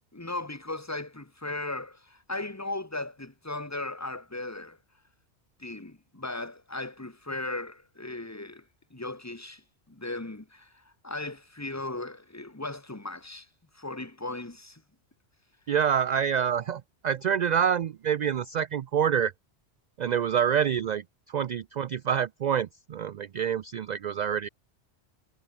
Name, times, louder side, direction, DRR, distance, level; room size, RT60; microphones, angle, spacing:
voice 1, 0.1-4.8 5.6-8.7 8.9-9.6 9.9-13.5 13.7-14.8, left 2 dB, 15° left, 1.6 m, -37 dB
voice 2, 15.7-19.3 20.0-24.5, right 8 dB, 60° right, 0.4 m, -27 dB
omnidirectional pair, 1.2 m